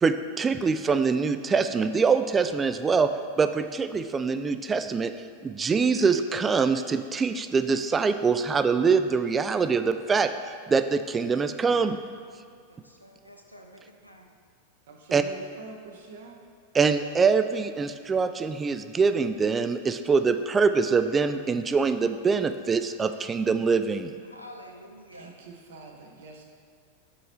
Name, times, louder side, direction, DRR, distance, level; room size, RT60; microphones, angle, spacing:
voice 1, 0.0-3.1 3.4-5.1 5.4-12.0 15.1-15.2 16.7-24.1, right 5 dB, 20° right, 10 dB, 0.3 m, -24 dB
voice 2, 12.7-14.3 24.2-25.4, equal, 90° left, 2 dB, 0.6 m, -48 dB
voice 3, 14.9-16.3 25.1-26.4, right 3 dB, 60° right, 1 dB, 0.9 m, -45 dB
5.5 x 4.2 x 5.5 m, 2.3 s
figure-of-eight pair, 90°, 0 cm